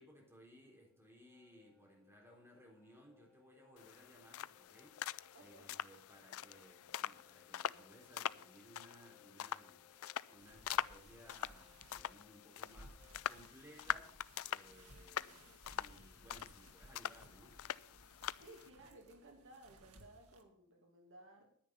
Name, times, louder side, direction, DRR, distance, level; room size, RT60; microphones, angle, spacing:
voice 1, 0.0-18.2, equal, 10° right, -1 dB, 3.9 m, -62 dB
sound 1, 0.9-13.5, left 8 dB, 5° left, 3.6 m, -70 dB
sound 2, 3.8-18.7, left 10 dB, 65° left, 0.4 m, -44 dB
voice 2, 5.3-5.7 18.4-21.5, right 1 dB, 60° right, 3 dB, 2.4 m, -58 dB
sound 3, 10.3-20.4, right 2 dB, 85° right, 1.9 m, -62 dB
10.5 x 10.0 x 5.5 m, 0.64 s
head